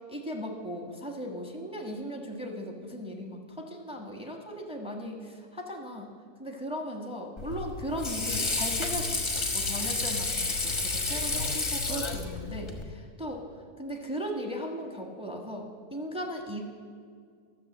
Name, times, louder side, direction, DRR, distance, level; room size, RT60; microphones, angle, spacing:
voice 1, 0.1-6.1 6.4-13.4 13.8-16.6, equal, 5° right, 2 dB, 1.2 m, -37 dB
Water / Sink (filling or washing), 7.4-12.8, left 3 dB, 20° left, 0.8 m, -30 dB
12.5 x 6.6 x 7.4 m, 2.1 s
omnidirectional pair, 1.8 m